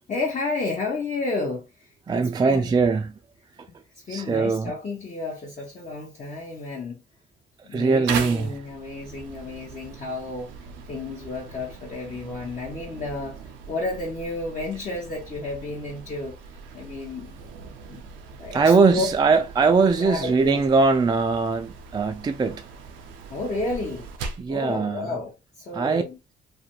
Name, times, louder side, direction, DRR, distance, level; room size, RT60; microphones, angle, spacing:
voice 1, 0.1-2.7 4.1-7.0 7.6-10.5 10.9-13.4 13.7-16.4 16.7-17.4 17.9-18.0 18.4-19.1 19.8-20.6 23.3-24.1 24.5-26.2, left 3 dB, 40° left, 0.8 m, -31 dB
voice 2, 2.1-3.2 4.1-4.7 7.7-8.6 18.5-22.7 24.4-25.1 25.7-26.0, right 4 dB, 20° right, 0.3 m, -21 dB
sound 1, 8.1-24.5, right 5 dB, 85° right, 0.5 m, -40 dB
2.4 x 2.1 x 2.9 m
supercardioid pair, 65°, 19 cm